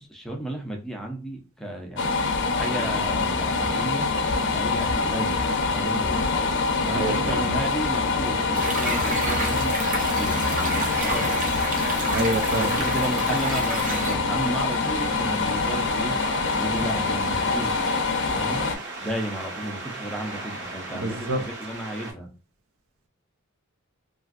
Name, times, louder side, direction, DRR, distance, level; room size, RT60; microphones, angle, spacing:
voice 1, 0.0-2.0 2.6-4.1 4.5-6.4 6.9-11.4 12.5-16.2 16.6-17.8 18.3-18.7 19.0-22.3, right 1 dB, ahead, 0.5 m, -33 dB
sound 1, 2.0-18.8, left 4 dB, 55° left, 0.5 m, -25 dB
voice 2, 6.9-7.6 12.1-12.8 20.9-21.4, right 2 dB, 70° right, 0.6 m, -27 dB
sound 2, 8.5-14.1, right 3 dB, 35° right, 0.7 m, -31 dB
sound 3, 10.7-22.1, right 2 dB, 50° right, 1.1 m, -38 dB
3.0 x 2.5 x 2.4 m
head